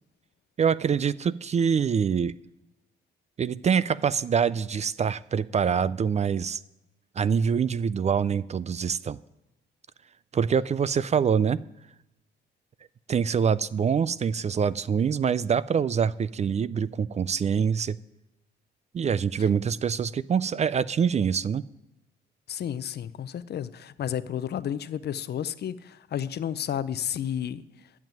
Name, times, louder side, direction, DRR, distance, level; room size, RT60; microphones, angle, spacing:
voice 1, 0.6-2.3 3.4-6.6 7.2-9.2 10.3-11.6 13.1-18.0 18.9-21.6, right 7 dB, 35° right, 0.4 m, -25 dB
voice 2, 22.5-27.6, left 9 dB, 55° left, 0.6 m, -32 dB
10.5 x 7.4 x 9.1 m
cardioid pair, 90°, 20 cm